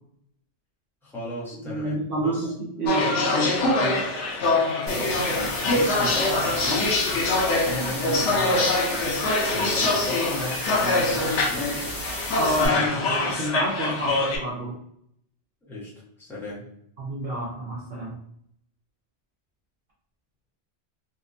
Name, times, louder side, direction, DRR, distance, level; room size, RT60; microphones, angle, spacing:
voice 1, 1.0-2.5 4.8-7.0 7.6-9.1 9.5-12.0 15.6-15.9 16.2-16.7, left 1 dB, ahead, -7 dB, 0.7 m, -35 dB
voice 2, 1.6-2.5 2.8-4.0 12.4-14.8 17.0-18.2, right 1 dB, 60° right, -4 dB, 0.7 m, -28 dB
sound 1, 2.9-14.4, left 2 dB, 85° left, 1.0 m, -24 dB
sound 2, 4.9-12.7, left 1 dB, 65° left, 1.2 m, -34 dB
2.7 x 2.1 x 2.5 m, 0.71 s
omnidirectional pair, 1.1 m